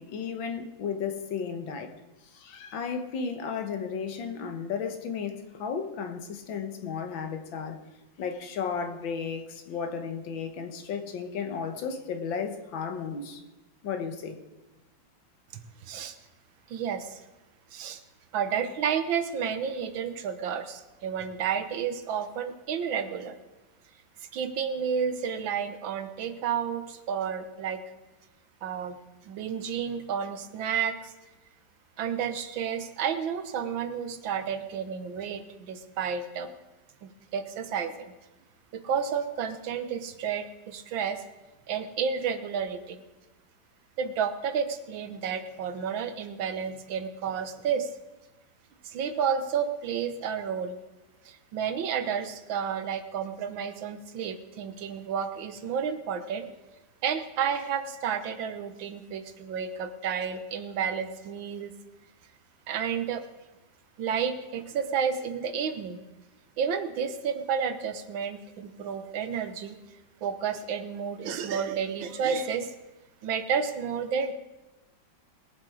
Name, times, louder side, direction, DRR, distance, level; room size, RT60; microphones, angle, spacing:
voice 1, 0.0-1.9 2.2-7.8 8.2-13.4 13.8-14.4, left 6 dB, 80° left, 1.9 m, -34 dB
voice 2, 15.8-16.2 16.7-17.2 17.7-18.0 18.3-23.4 24.3-27.8 28.6-29.0 29.2-31.1 32.0-36.5 37.0-38.1 38.7-41.2 41.7-43.0 44.0-47.9 48.8-50.8 51.3-56.5 57.0-61.7 62.7-63.2 64.0-66.0 66.6-69.8 70.2-72.7 73.2-74.3, right 7 dB, 80° right, 1.7 m, -31 dB
21.0 x 7.6 x 4.8 m
omnidirectional pair, 2.1 m